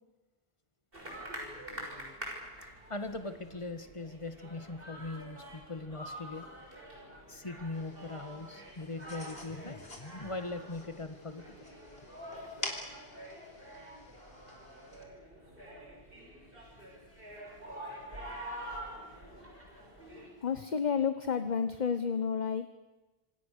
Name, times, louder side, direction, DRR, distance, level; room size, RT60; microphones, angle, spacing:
sound 1, 0.9-20.3, right 1 dB, 65° right, 6.5 m, -47 dB
voice 1, 2.9-6.5 7.3-11.7 16.6-20.5, left 2 dB, 30° left, 9 dB, 1.8 m, -42 dB
sound 2, 7.7-15.0, left 1 dB, 70° left, 3.9 m, -47 dB
voice 2, 20.4-22.7, left 6 dB, 45° left, 10 dB, 1.2 m, -30 dB
27.0 x 26.0 x 6.8 m, 1.1 s
omnidirectional pair, 1.0 m